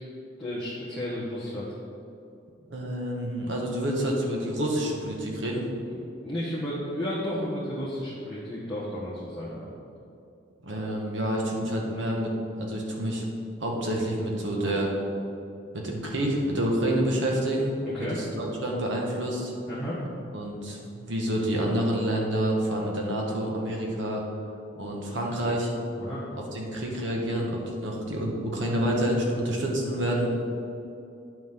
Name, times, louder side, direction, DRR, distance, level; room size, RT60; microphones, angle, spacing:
voice 1, 0.4-1.7 5.9-9.7 17.9-18.2 19.7-20.0 26.0-26.2, equal, 5° left, -12 dB, 1.4 m, -33 dB
voice 2, 2.7-5.7 10.6-13.2 13.6-14.9 15.7-19.5 20.3-24.2 24.8-25.7 26.5-30.3, right 1 dB, 75° right, -1 dB, 1.4 m, -28 dB
9.8 x 6.3 x 3.7 m, 2.6 s
head